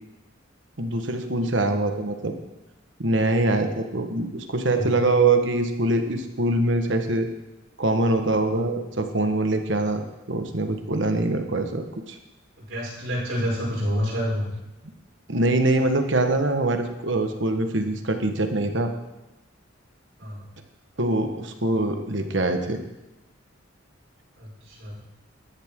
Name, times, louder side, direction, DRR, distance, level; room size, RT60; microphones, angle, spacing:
voice 1, 0.8-2.3 3.0-7.3 7.8-12.2 15.3-18.9 21.0-22.8, right 2 dB, 65° right, 6 dB, 1.4 m, -23 dB
voice 2, 12.6-14.5 20.2-20.4 24.4-24.9, equal, 80° right, -7 dB, 5.7 m, -28 dB
14.0 x 13.0 x 3.7 m, 0.98 s
head